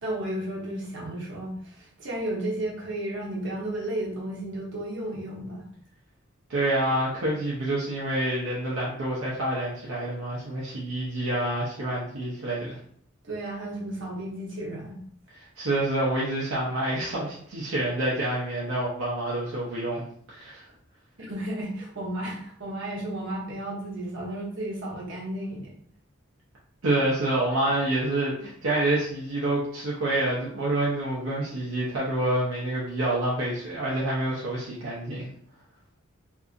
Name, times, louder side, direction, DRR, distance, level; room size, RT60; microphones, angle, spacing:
voice 1, 0.0-5.6 13.2-15.0 21.2-25.7, right 1 dB, 65° right, -4 dB, 0.9 m, -33 dB
voice 2, 6.5-12.8 15.6-20.6 26.8-35.3, right 1 dB, 80° right, -6 dB, 0.6 m, -27 dB
2.6 x 2.5 x 2.4 m, 0.63 s
head